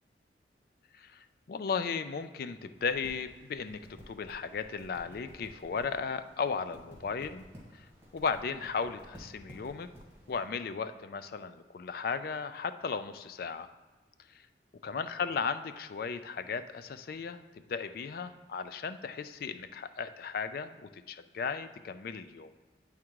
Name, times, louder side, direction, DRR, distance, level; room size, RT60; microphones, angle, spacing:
voice 1, 0.9-3.8 4.1-7.5 7.7-7.8 8.1-9.9 10.3-13.7 14.8-22.5, left 5 dB, 55° left, 11 dB, 0.4 m, -36 dB
sound 1, 2.7-10.5, equal, 15° right, 2.0 m, -54 dB
8.8 x 3.6 x 4.6 m, 1.2 s
head